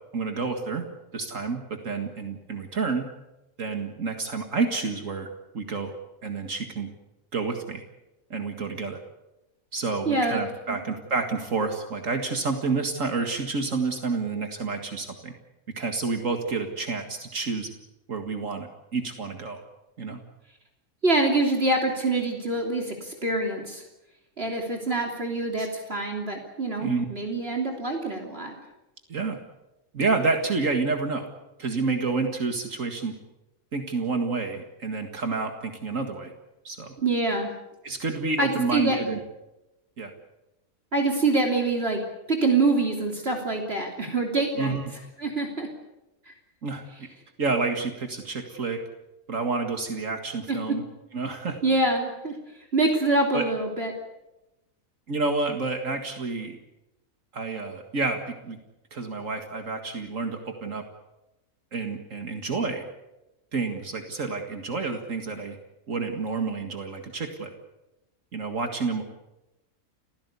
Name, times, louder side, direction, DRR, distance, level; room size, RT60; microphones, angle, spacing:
voice 1, 0.1-0.9 1.1-3.1 3.6-5.3 5.5-5.9 6.2-6.9 7.3-7.8 8.3-9.0 9.7-15.3 15.8-17.7 18.1-19.6 20.0-20.2 25.6-25.7 26.8-27.1 29.1-29.4 29.9-31.3 31.6-33.1 33.7-36.3 36.6-37.0 37.8-39.2 40.0-40.1 44.6-45.0 46.6-47.1 47.4-48.8 49.3-50.8 51.1-51.6 53.3-53.5 55.1-56.6 57.3-58.6 58.9-60.8 61.7-62.9 63.5-65.6 65.9-67.5 68.3-69.0, right 4 dB, 70° right, 5 dB, 2.2 m, -29 dB
voice 2, 10.1-10.4 10.7-10.8 21.0-23.8 24.4-28.6 37.0-37.5 38.4-39.0 40.9-42.0 42.3-44.8 45.2-45.7 46.3-46.4 50.5-50.8 51.6-52.4 52.7-53.9, right 2 dB, 45° right, 2 dB, 3.4 m, -25 dB
30.0 x 16.0 x 8.3 m, 0.98 s
omnidirectional pair, 1.4 m